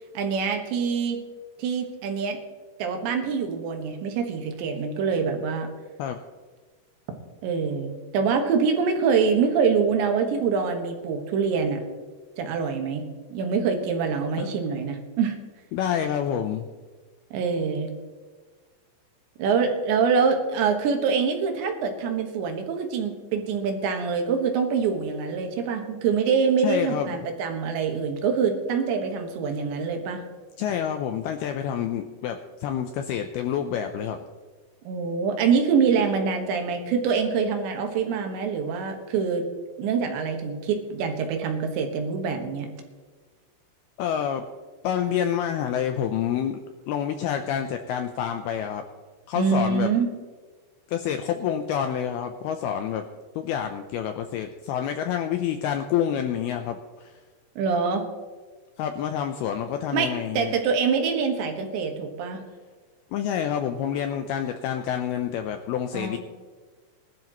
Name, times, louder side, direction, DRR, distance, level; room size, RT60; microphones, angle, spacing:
voice 1, 0.2-1.2 1.6-2.4 2.8-5.7 7.4-11.8 12.4-15.4 17.3-17.9 19.4-30.2 34.9-39.5 39.8-42.7 49.4-50.1 57.6-58.1 59.9-62.4 65.9-66.2, right 5 dB, 80° right, 4 dB, 3.7 m, -25 dB
voice 2, 15.7-16.7 26.6-27.1 30.6-34.2 44.0-44.4 44.8-46.6 46.9-48.8 49.3-49.9 50.9-53.1 53.4-57.1 58.8-60.5 63.1-66.2, left 9 dB, 85° left, 6 dB, 2.2 m, -28 dB
20.5 x 12.5 x 3.1 m, 1.4 s
omnidirectional pair, 5.2 m